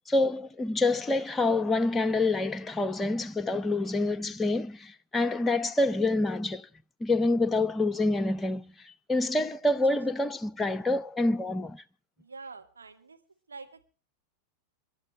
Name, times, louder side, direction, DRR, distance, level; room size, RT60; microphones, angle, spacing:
voice 1, 0.1-6.7 7.0-11.8, left 2 dB, 15° left, 0.8 m, -27 dB
voice 2, 12.2-13.2 13.5-13.8, right 4 dB, 75° right, 2.2 m, -46 dB
27.5 x 12.0 x 3.3 m
figure-of-eight pair, 90°, 0 cm